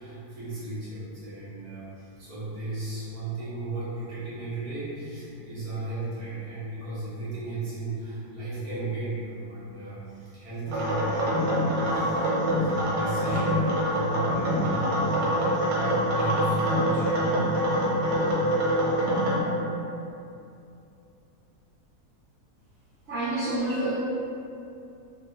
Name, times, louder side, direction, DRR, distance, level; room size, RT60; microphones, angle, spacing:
voice 1, 0.0-15.0 16.2-17.1, right 2 dB, 15° right, -13 dB, 0.7 m, -35 dB
sound 1, 10.7-19.4, equal, 80° right, 1.2 m, -25 dB
voice 2, 23.1-23.9, right 1 dB, 60° right, -11 dB, 0.7 m, -28 dB
2.7 x 2.6 x 2.8 m, 2.7 s
omnidirectional pair, 1.7 m